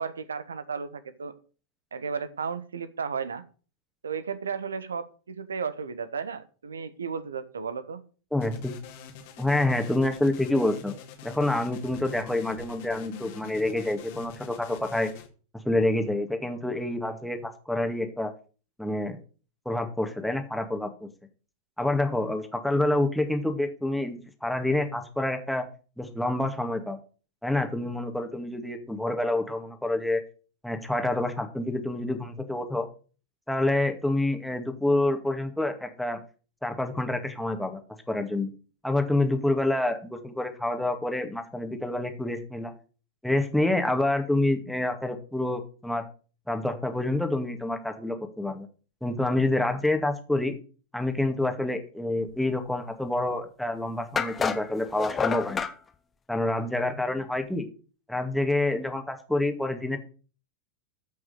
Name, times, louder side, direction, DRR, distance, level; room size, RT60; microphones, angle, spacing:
voice 1, 0.0-1.4 1.9-3.4 4.0-8.0, right 6 dB, 70° right, 16 dB, 1.2 m, -34 dB
voice 2, 8.3-8.7 9.4-10.9 11.2-15.1 15.6-18.3 18.8-19.2 19.7-21.1 21.8-25.6 26.0-27.0 27.4-30.2 30.6-32.9 33.5-36.2 36.6-37.8 38.1-38.5 38.8-42.7 43.2-46.1 46.5-48.7 49.0-50.5 50.9-55.6 56.3-57.7 58.1-60.0, left 2 dB, ahead, 5 dB, 2.0 m, -27 dB
sound 1, 8.4-15.3, left 6 dB, 50° left, 2.3 m, -44 dB
sound 2, 53.3-53.4 54.2-55.8, left 6 dB, 20° left, 1.1 m, -29 dB
14.0 x 6.0 x 6.6 m, 0.39 s
figure-of-eight pair, 90°, 0 cm